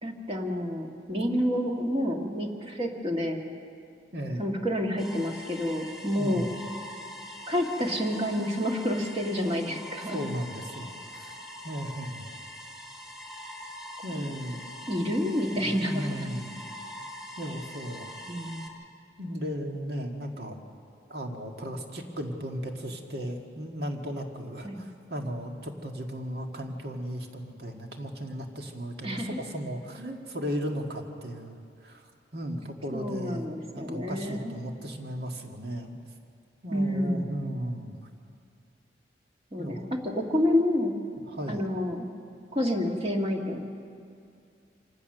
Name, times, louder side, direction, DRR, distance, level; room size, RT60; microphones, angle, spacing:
voice 1, 0.0-3.4 4.4-6.5 7.5-10.2 14.9-16.3 18.3-18.7 24.6-24.8 29.0-29.4 32.9-34.6 36.7-37.4 39.5-39.8 40.0-40.9 41.5-42.1 42.5-43.7, equal, 30° right, 1 dB, 1.8 m, -29 dB
voice 2, 4.1-4.5 6.2-6.5 10.1-11.3 11.6-12.3 14.0-14.6 15.6-16.6 17.4-18.1 19.2-20.6 21.1-36.0 36.6-37.9 39.6-39.9 41.3-41.7, equal, 65° right, 3 dB, 1.8 m, -36 dB
sound 1, 5.0-18.7, left 1 dB, ahead, 2.1 m, -43 dB
26.0 x 15.5 x 6.6 m, 2.4 s
head